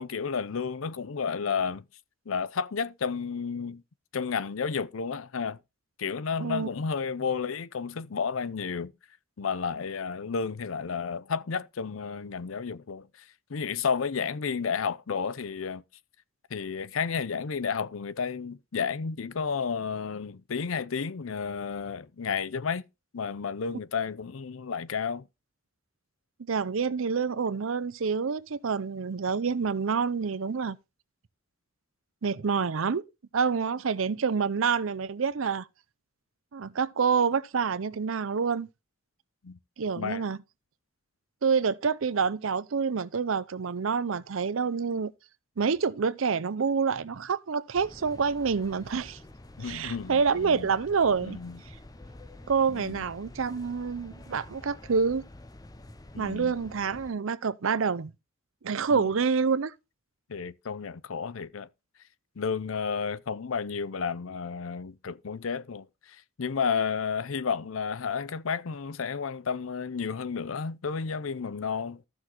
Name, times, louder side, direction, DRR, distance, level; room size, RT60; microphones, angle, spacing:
voice 1, 0.0-1.8 2.3-3.8 4.1-5.6 6.0-8.9 9.4-13.1 13.5-15.8 16.5-22.8 23.1-25.2 39.4-39.6 40.0-40.2 49.6-50.7 51.2-51.6 52.7-53.0 56.1-56.5 58.9-59.1 60.3-61.7 62.4-72.1, left 6 dB, 90° left, 0.6 m, -32 dB
voice 2, 26.4-30.8 32.2-33.0 33.3-35.7 36.5-38.7 39.8-40.4 41.4-45.1 45.6-49.2 49.6-51.4 52.5-55.2 56.2-58.1 58.6-59.7, right 5 dB, 80° right, 0.6 m, -27 dB
sound 1, 47.7-57.1, left 1 dB, 20° left, 0.7 m, -48 dB
14.5 x 6.2 x 3.0 m
head